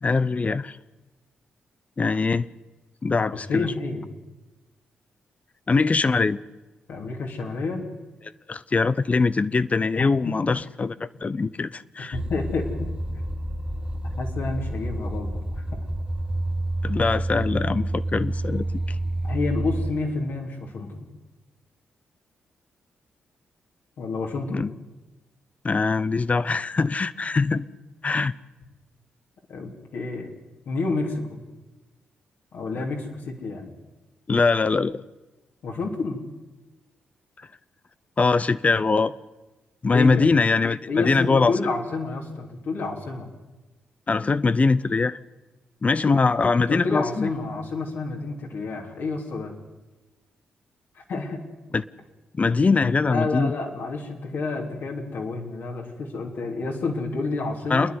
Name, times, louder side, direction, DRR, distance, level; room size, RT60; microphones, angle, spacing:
voice 1, 0.0-0.8 2.0-2.5 3.0-3.7 5.7-6.4 8.5-12.2 16.8-19.0 24.5-24.7 25.6-27.6 28.0-28.3 34.3-35.0 38.2-39.1 39.8-41.5 44.1-45.2 45.8-47.3 51.7-51.8 52.3-53.5 57.7-57.9, left 4 dB, 40° left, 0.7 m, -22 dB
voice 2, 3.5-4.1 6.9-7.9 10.0-10.4 12.1-12.9 13.2-13.3 14.2-15.6 19.2-21.1 24.0-24.7 29.5-30.3 30.7-31.4 32.5-33.7 35.6-36.2 39.9-40.3 40.9-43.3 46.5-49.5 51.0-51.5 53.1-57.9, left 3 dB, 70° left, 3.3 m, -29 dB
sound 1, 12.1-19.9, right 1 dB, 25° right, 1.2 m, -29 dB
28.0 x 10.5 x 9.6 m
supercardioid pair, 50°, 4 cm